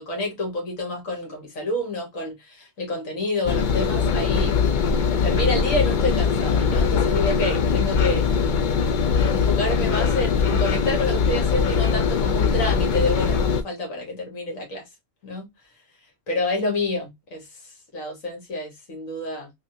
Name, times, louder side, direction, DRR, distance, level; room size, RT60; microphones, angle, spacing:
voice 1, 0.0-4.6 5.2-8.3 9.2-14.9 15.2-15.5 16.3-17.5 17.9-19.5, left 2 dB, 85° left, 1.7 m, -28 dB
Engine, 3.5-13.6, left 6 dB, 60° left, 0.5 m, -21 dB
3.4 x 2.5 x 2.6 m
omnidirectional pair, 1.3 m